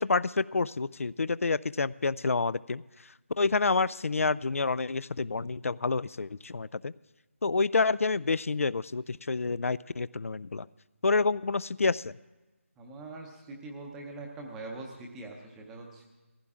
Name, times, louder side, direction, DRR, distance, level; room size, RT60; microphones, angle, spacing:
voice 1, 0.0-2.8 3.4-6.9 7.4-10.7 11.0-12.1, left 4 dB, 80° left, 20 dB, 0.4 m, -28 dB
voice 2, 12.8-16.0, right 2 dB, 5° right, 0 dB, 0.6 m, -43 dB
18.0 x 15.5 x 3.6 m, 1.1 s
figure-of-eight pair, 175°, 7 cm